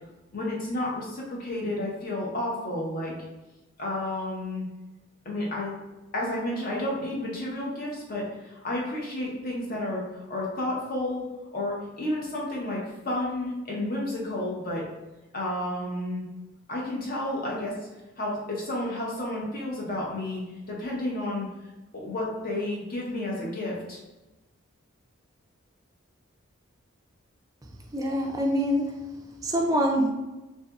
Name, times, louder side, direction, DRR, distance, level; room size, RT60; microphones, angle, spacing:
voice 1, 0.3-3.1 3.8-4.6 5.2-5.8 6.1-11.3 11.5-14.8 15.3-16.2 16.7-17.8 18.2-20.4 20.7-21.5 21.9-24.0, left 1 dB, 45° left, -3 dB, 0.7 m, -31 dB
voice 2, 27.9-30.1, equal, 15° right, 0 dB, 0.3 m, -26 dB
2.7 x 2.6 x 2.3 m, 1.1 s
head